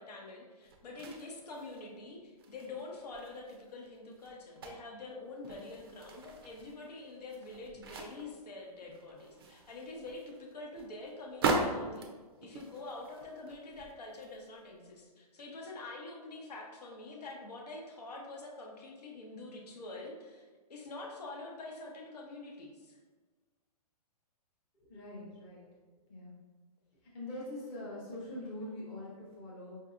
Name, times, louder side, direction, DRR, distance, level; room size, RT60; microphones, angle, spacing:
voice 1, 0.0-12.1 12.4-23.0, left 2 dB, 85° left, -1 dB, 0.9 m, -46 dB
sound 1, 0.6-2.0 2.4-5.0 5.3-8.4 8.8-14.5 15.0-15.1, right 3 dB, 40° right, 0.4 m, -40 dB
voice 2, 24.9-25.6 26.1-26.4 27.1-29.8, left 1 dB, 15° left, -6 dB, 0.6 m, -43 dB
4.8 x 2.6 x 2.4 m, 1.4 s
hypercardioid pair, 170°, 20 cm